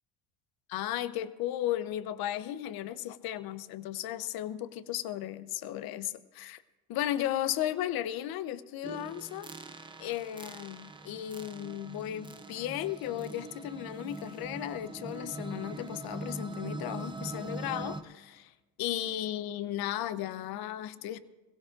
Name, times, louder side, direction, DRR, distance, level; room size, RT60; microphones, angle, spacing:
voice 1, 0.7-6.6 6.9-9.5 10.0-18.5 18.8-21.2, left 12 dB, 60° left, 0.8 m, -35 dB
sound 1, 8.8-18.0, right 2 dB, 10° right, 0.6 m, -42 dB
22.0 x 16.5 x 2.5 m
supercardioid pair, 100°, 41 cm